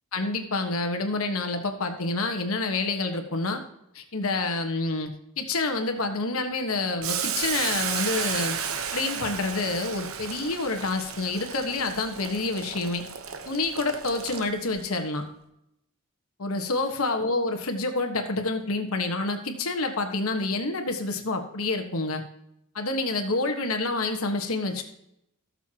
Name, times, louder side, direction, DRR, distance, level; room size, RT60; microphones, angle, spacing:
voice 1, 0.1-3.6 3.9-8.6 8.9-13.0 13.5-15.2 16.4-22.2 22.7-24.8, left 3 dB, 75° left, 5 dB, 1.4 m, -28 dB
Boiling, 7.0-14.8, right 7 dB, 65° right, 1.0 m, -33 dB
18.0 x 7.0 x 2.9 m, 0.80 s
head